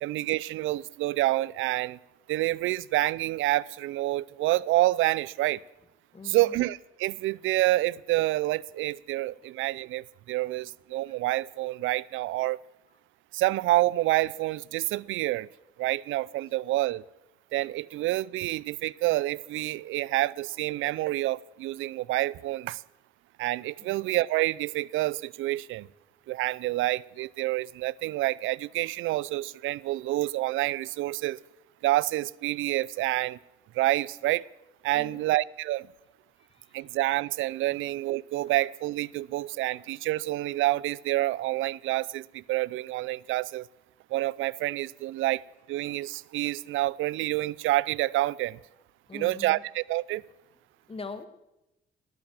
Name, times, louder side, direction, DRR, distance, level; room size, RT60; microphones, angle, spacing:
voice 1, 0.0-2.0 2.3-5.6 6.2-12.6 13.3-15.5 15.8-17.0 17.5-22.8 23.4-25.9 26.3-31.4 31.8-33.4 33.7-34.5 34.8-35.9 36.7-43.7 44.1-45.4 45.7-48.6 49.1-50.2, right 17 dB, 85° right, 23 dB, 0.4 m, -28 dB
voice 2, 6.1-6.6 9.4-9.5 23.8-24.0 34.9-35.3 36.5-36.7 49.1-49.6 50.9-51.3, left 4 dB, 30° left, 11 dB, 1.6 m, -42 dB
18.5 x 9.1 x 7.5 m, 0.93 s
cardioid pair, 90°, 20 cm